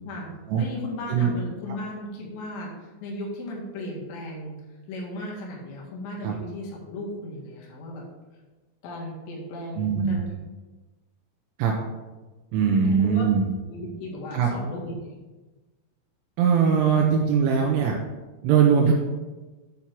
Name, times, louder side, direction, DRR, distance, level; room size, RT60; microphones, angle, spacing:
voice 1, 0.6-2.7 3.0-4.6 4.9-8.0 8.8-10.3 12.6-13.3 13.7-15.1 17.6-17.8, left 1 dB, 65° left, -3 dB, 3.7 m, -36 dB
voice 2, 9.8-10.2 11.6-11.7 12.5-13.4 14.3-14.5 16.4-17.9 18.4-18.9, right 7 dB, 80° right, 0 dB, 3.1 m, -21 dB
9.2 x 4.3 x 6.0 m, 1.2 s
omnidirectional pair, 6.0 m